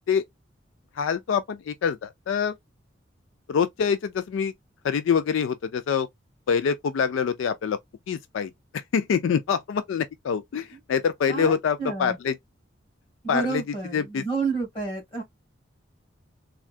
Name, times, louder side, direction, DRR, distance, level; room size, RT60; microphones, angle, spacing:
voice 1, 1.0-2.5 3.5-4.5 4.8-6.1 6.5-7.8 8.1-12.3 13.3-13.6 13.9-14.2, left 6 dB, 80° left, 0.3 m, -25 dB
voice 2, 11.3-12.2 13.2-15.2, right 4 dB, 30° left, 1.9 m, -30 dB
3.6 x 2.2 x 2.4 m
head